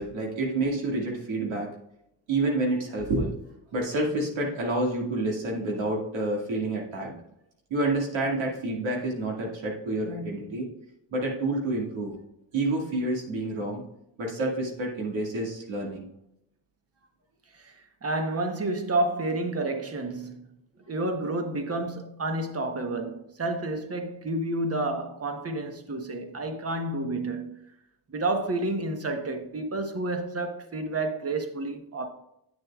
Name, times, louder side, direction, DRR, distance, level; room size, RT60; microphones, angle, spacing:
voice 1, 0.0-1.7 2.3-3.3 3.7-7.2 7.7-10.7 11.1-12.2 12.5-13.8 14.2-16.0, right 2 dB, 70° right, 2.2 m, -28 dB
voice 2, 17.5-20.4 20.9-27.5 28.1-32.1, right 2 dB, 30° right, 1.2 m, -30 dB
9.0 x 6.6 x 2.4 m
cardioid pair, 75°, 48 cm